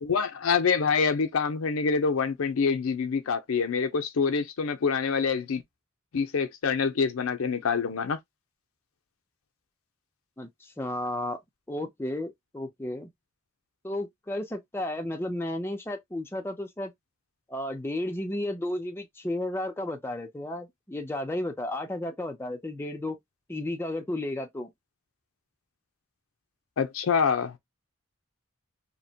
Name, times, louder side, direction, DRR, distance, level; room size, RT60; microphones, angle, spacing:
voice 1, 0.0-5.6 6.1-8.2 26.8-27.6, left 5 dB, 75° left, 0.5 m, -26 dB
voice 2, 10.4-11.4 11.7-13.1 13.8-16.9 17.5-23.2 23.5-24.7, left 1 dB, 10° left, 0.5 m, -33 dB
2.8 x 2.1 x 2.6 m
head